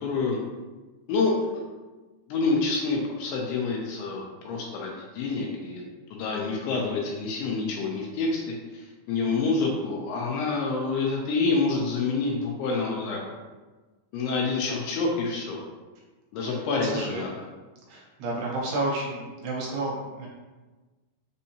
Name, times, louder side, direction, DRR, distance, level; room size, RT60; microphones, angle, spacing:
voice 1, 0.0-0.4 1.1-1.6 2.3-5.8 6.1-8.4 8.7-13.3 14.1-15.6 16.3-17.4, left 3 dB, 80° left, -1 dB, 2.5 m, -27 dB
voice 2, 16.4-17.2 17.9-20.3, right 2 dB, 75° right, -3 dB, 2.6 m, -31 dB
6.4 x 2.7 x 2.7 m, 1.2 s
omnidirectional pair, 4.9 m